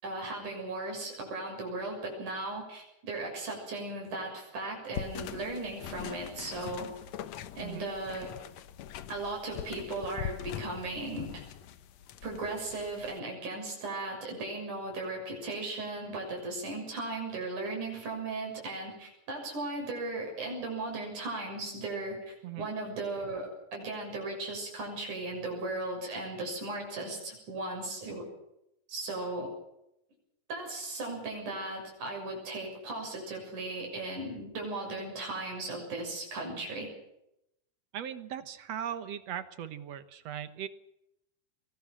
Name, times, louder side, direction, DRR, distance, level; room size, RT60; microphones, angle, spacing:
voice 1, 0.0-6.9 7.5-8.3 9.1-11.4 12.2-28.2 28.9-29.5 30.5-36.9, right 2 dB, 85° right, 0 dB, 8.3 m, -37 dB
sound 1, 4.9-13.2, left 9 dB, 70° left, 2.1 m, -42 dB
voice 2, 37.9-40.7, right 9 dB, 60° right, 12 dB, 2.2 m, -38 dB
23.0 x 19.5 x 6.2 m, 0.82 s
omnidirectional pair, 3.5 m